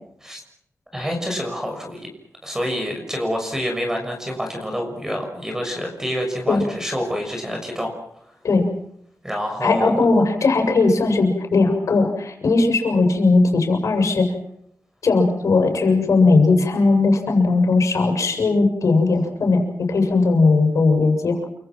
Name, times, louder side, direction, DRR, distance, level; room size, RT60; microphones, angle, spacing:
voice 1, 0.9-2.1 2.4-7.9 9.2-10.0, equal, 10° right, 3 dB, 6.5 m, -27 dB
voice 2, 9.6-14.3 15.0-21.4, left 3 dB, 90° left, 3 dB, 7.2 m, -18 dB
29.0 x 25.5 x 6.1 m, 0.74 s
wide cardioid pair, 155°, 5 cm